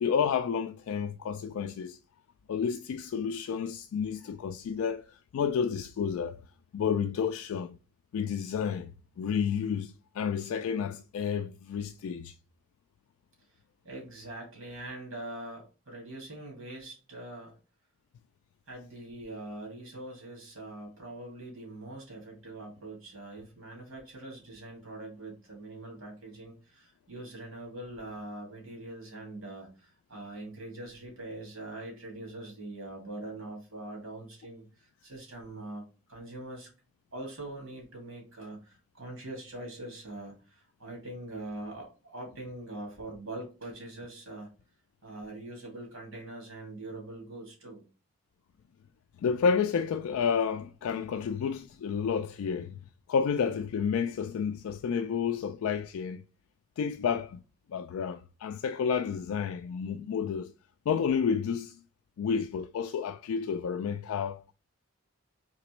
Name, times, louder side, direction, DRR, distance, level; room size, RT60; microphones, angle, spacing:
voice 1, 0.0-2.0 2.5-6.4 6.7-7.8 8.1-8.9 9.2-12.3 49.2-52.8 53.1-56.2 56.8-57.4 57.7-60.5 60.9-61.8 62.2-64.5, left 6 dB, 85° left, 0.3 m, -30 dB
voice 2, 13.8-17.6 18.7-36.7 37.1-44.5 45.0-47.8, right 2 dB, 75° right, 2.1 m, -43 dB
4.0 x 3.0 x 3.0 m
head